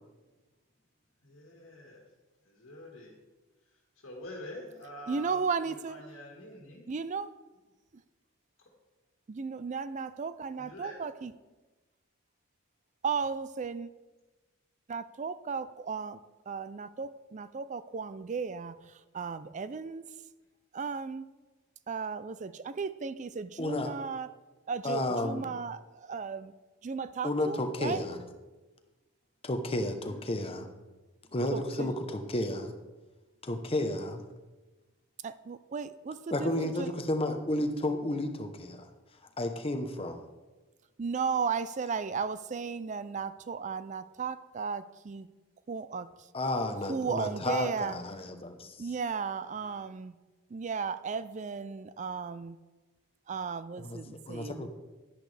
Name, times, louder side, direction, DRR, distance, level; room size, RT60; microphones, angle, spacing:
voice 1, 1.2-2.0 2.5-3.1 4.0-6.9 10.6-11.0 30.0-30.2 49.5-49.9, equal, 65° left, -3 dB, 1.8 m, -47 dB
voice 2, 5.1-6.0 6.9-7.3 9.3-11.3 13.0-13.9 14.9-16.2 16.5-18.8 19.1-20.0 20.7-21.3 21.9-24.3 24.7-26.5 26.8-28.0 31.5-31.9 35.2-36.9 41.0-45.3 45.7-46.1 46.9-48.0 48.8-50.1 50.5-52.6 53.3-54.7, right 5 dB, 35° right, 14 dB, 0.4 m, -35 dB
voice 3, 23.6-23.9 24.8-25.5 27.2-28.2 29.4-30.7 31.3-32.7 33.4-34.2 36.3-38.9 39.4-40.2 46.3-48.9 53.8-54.7, left 1 dB, 25° left, 6 dB, 0.9 m, -32 dB
10.5 x 10.5 x 3.4 m, 1.2 s
head